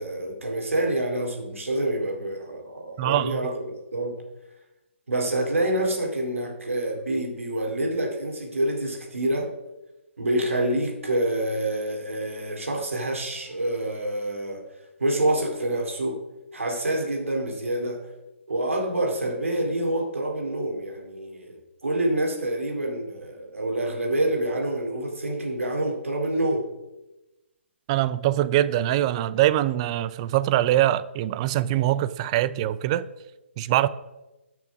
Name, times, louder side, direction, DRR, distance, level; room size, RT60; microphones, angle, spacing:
voice 1, 0.0-4.2 5.1-9.5 10.2-14.6 15.0-16.2 16.5-18.1 18.5-26.7, right 1 dB, 85° right, 2.4 m, -27 dB
voice 2, 3.0-3.5 27.9-33.1 33.6-33.9, right 13 dB, 25° right, 0.4 m, -23 dB
10.5 x 6.1 x 5.9 m
hypercardioid pair, 145°, 7 cm